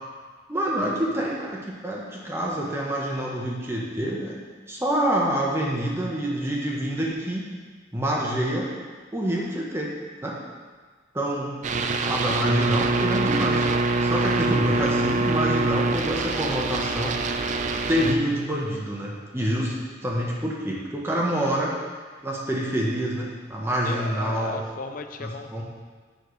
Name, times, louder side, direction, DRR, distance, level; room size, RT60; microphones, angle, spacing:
voice 1, 0.5-4.3 4.7-7.4 7.9-8.7 9.1-9.9 10.2-10.4 11.1-11.6 12.0-13.6 14.0-17.2 17.9-21.7 22.2-24.5 25.2-25.6, right 1 dB, 10° right, -3 dB, 1.0 m, -27 dB
sound 1, 11.6-18.2, right 3 dB, 40° right, 0.4 m, -24 dB
voice 2, 23.8-25.6, left 3 dB, 45° left, 6 dB, 0.5 m, -35 dB
9.0 x 6.5 x 3.2 m, 1.5 s
head